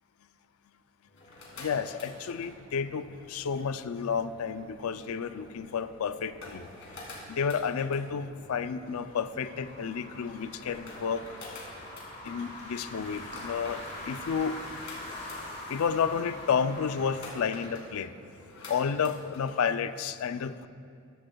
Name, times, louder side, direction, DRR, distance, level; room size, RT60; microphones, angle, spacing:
sound 1, 1.1-19.6, left 1 dB, 60° left, 2.4 m, -49 dB
voice 1, 1.6-6.7 7.3-11.2 12.2-14.6 15.7-18.1 18.7-20.7, left 6 dB, 85° left, 12 dB, 0.4 m, -31 dB
sound 2, 2.5-17.3, left 1 dB, 35° left, 1.9 m, -45 dB
14.0 x 12.5 x 2.3 m, 2.3 s
head